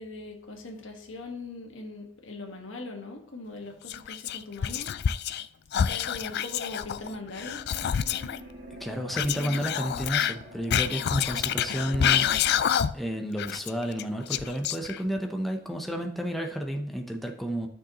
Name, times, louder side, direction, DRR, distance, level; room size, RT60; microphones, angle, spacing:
voice 1, 0.0-4.9 5.9-7.6, left 2 dB, 80° left, 2 dB, 1.6 m, -40 dB
Whispering, 3.9-5.5 5.7-8.4 9.1-13.1 13.4-15.2, left 9 dB, 55° left, 0.4 m, -28 dB
sound 1, 6.7-12.4, equal, 75° right, 1.8 m, -45 dB
voice 2, 8.7-12.3 12.9-17.7, equal, ahead, 2 dB, 0.7 m, -31 dB
13.0 x 6.3 x 3.0 m, 0.70 s
head